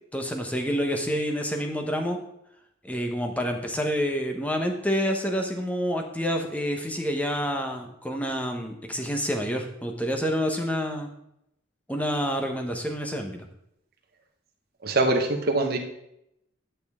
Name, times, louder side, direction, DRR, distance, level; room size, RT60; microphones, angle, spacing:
voice 1, 0.1-2.2 2.8-11.1 11.9-13.4, equal, 5° left, 4 dB, 1.0 m, -28 dB
voice 2, 14.8-15.8, right 2 dB, 50° right, 3 dB, 1.2 m, -23 dB
10.5 x 6.8 x 3.6 m, 0.79 s
head